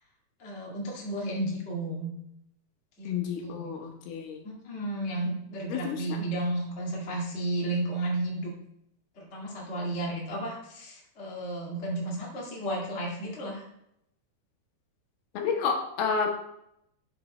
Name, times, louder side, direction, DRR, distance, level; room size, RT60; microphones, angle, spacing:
voice 1, 0.4-2.1 3.0-3.1 3.4-3.7 4.4-8.5 9.1-13.6, right 1 dB, 45° left, -3 dB, 0.8 m, -33 dB
voice 2, 3.0-4.4 5.7-6.0 15.3-16.3, left 6 dB, 75° left, 2 dB, 2.8 m, -30 dB
7.7 x 6.8 x 3.1 m, 0.76 s
omnidirectional pair, 4.6 m